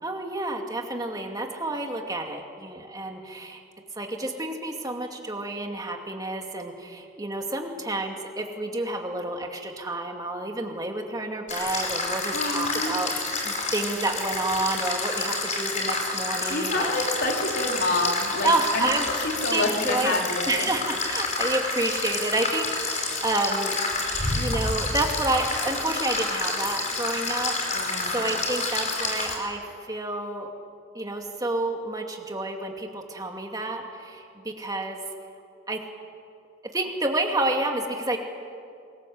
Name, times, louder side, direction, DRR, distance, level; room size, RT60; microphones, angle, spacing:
voice 1, 0.0-3.6 4.0-13.1 13.4-16.9 18.4-20.1 20.5-23.8 24.3-29.6 29.9-30.5 30.9-35.0 35.7-35.8 36.7-38.2, right 2 dB, 20° right, 2 dB, 2.5 m, -29 dB
sound 1, 11.5-29.4, left 3 dB, 35° left, 5.2 m, -29 dB
voice 2, 12.3-13.0 16.5-20.7 27.7-28.2, left 2 dB, 55° left, 0 dB, 4.4 m, -28 dB
27.5 x 21.5 x 7.9 m, 2.3 s
head